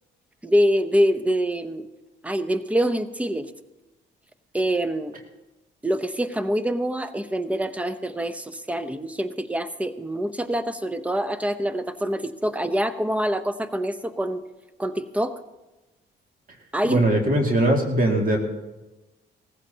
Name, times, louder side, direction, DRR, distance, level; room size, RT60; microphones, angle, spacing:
voice 1, 0.4-1.9 2.2-3.5 4.5-5.1 5.8-14.4 14.8-15.4 16.7-17.1, equal, 5° right, 12 dB, 0.7 m, -25 dB
voice 2, 16.8-18.4, right 1 dB, 45° right, 1 dB, 2.3 m, -20 dB
18.0 x 15.0 x 2.9 m, 1.1 s
cardioid pair, 90°, 20 cm